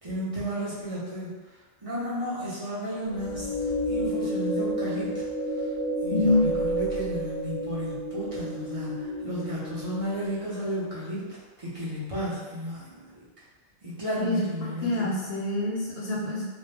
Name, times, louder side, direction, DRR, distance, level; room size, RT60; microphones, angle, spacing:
voice 1, 0.0-1.3 1.8-5.3 5.5-5.7 6.0-13.2 13.8-15.3, equal, 30° right, -10 dB, 0.8 m, -33 dB
sound 1, 3.1-10.4, right 1 dB, ahead, 0.3 m, -31 dB
voice 2, 6.1-6.5 14.2-14.4 14.8-16.5, left 2 dB, 65° left, -4 dB, 0.8 m, -26 dB
3.0 x 2.2 x 3.3 m, 1.3 s
omnidirectional pair, 1.2 m